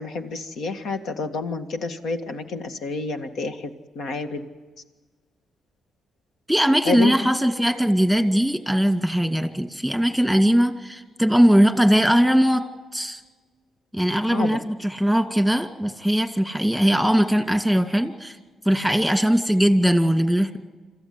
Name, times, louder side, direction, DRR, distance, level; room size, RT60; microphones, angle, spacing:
voice 1, 0.0-3.7 4.0-4.5 6.9-7.1 14.3-14.5, left 4 dB, 75° left, 6 dB, 2.0 m, -29 dB
voice 2, 6.5-12.6 12.9-13.2 13.9-18.4 18.7-20.6, equal, 5° left, 7 dB, 2.2 m, -20 dB
27.0 x 14.5 x 9.6 m, 1.3 s
cardioid pair, 70°, 0 cm